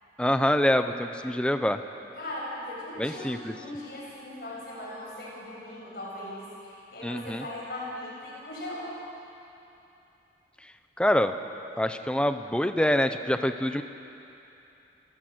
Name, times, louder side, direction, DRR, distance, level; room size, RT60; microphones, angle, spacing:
voice 1, 0.2-1.8 3.0-3.5 7.0-7.4 11.0-11.3 11.8-13.8, left 1 dB, 5° left, 8 dB, 0.7 m, -25 dB
voice 2, 2.1-8.9, left 1 dB, 55° left, -5 dB, 7.6 m, -39 dB
28.5 x 15.0 x 7.9 m, 2.9 s
head